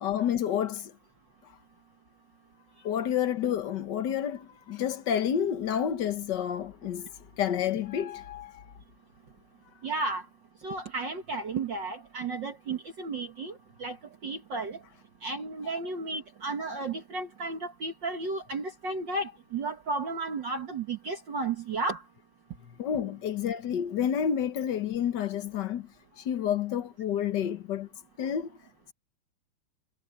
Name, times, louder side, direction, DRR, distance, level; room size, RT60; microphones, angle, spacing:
voice 1, 0.0-0.9 2.8-7.1 7.4-8.7 22.8-25.9 26.2-27.9 28.2-28.6, left 9 dB, 55° left, 1.3 m, -29 dB
voice 2, 9.8-10.2 10.6-14.0 14.2-14.8 15.2-22.0, right 3 dB, 45° right, 1.9 m, -33 dB
omnidirectional pair, 3.3 m